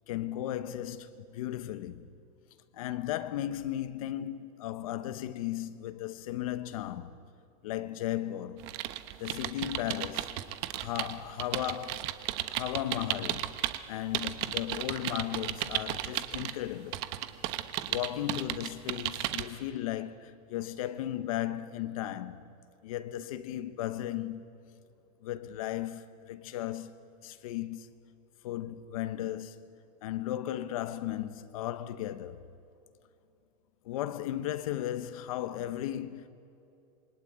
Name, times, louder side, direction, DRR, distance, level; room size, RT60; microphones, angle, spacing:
voice 1, 0.1-2.1 2.7-7.2 7.6-8.7 9.2-10.4 10.7-12.1 12.5-13.6 13.9-17.1 17.9-22.4 22.8-24.5 25.2-27.0 27.2-27.9 28.4-29.7 30.0-32.4 33.8-36.3, left 12 dB, 70° left, 1.2 m, -36 dB
sound 1, 8.6-13.8 14.1-16.5 16.9-19.5, right 14 dB, 50° right, 1.2 m, -34 dB
27.0 x 23.0 x 9.5 m
supercardioid pair, 170°, 18 cm